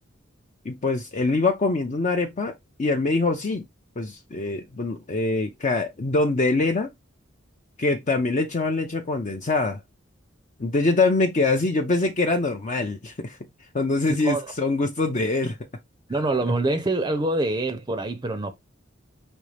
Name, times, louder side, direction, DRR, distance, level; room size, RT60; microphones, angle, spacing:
voice 1, 0.6-2.5 2.8-3.6 4.0-6.9 7.8-9.8 10.6-13.4 13.7-15.6, left 3 dB, 40° left, 0.5 m, -24 dB
voice 2, 16.1-18.6, right 2 dB, 25° right, 0.5 m, -25 dB
5.2 x 3.1 x 3.3 m
head